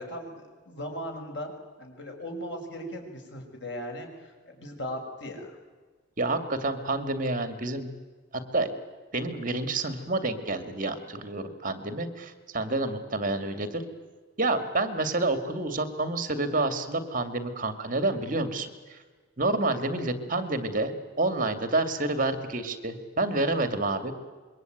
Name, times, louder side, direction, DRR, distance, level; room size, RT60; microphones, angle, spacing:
voice 1, 0.0-1.5 1.8-5.5, equal, 70° left, 2 dB, 6.6 m, -38 dB
voice 2, 6.2-7.9 8.3-8.7 9.1-13.8 14.4-19.0 19.4-24.1, right 2 dB, 45° right, 9 dB, 2.3 m, -28 dB
26.5 x 22.5 x 9.3 m, 1.4 s
head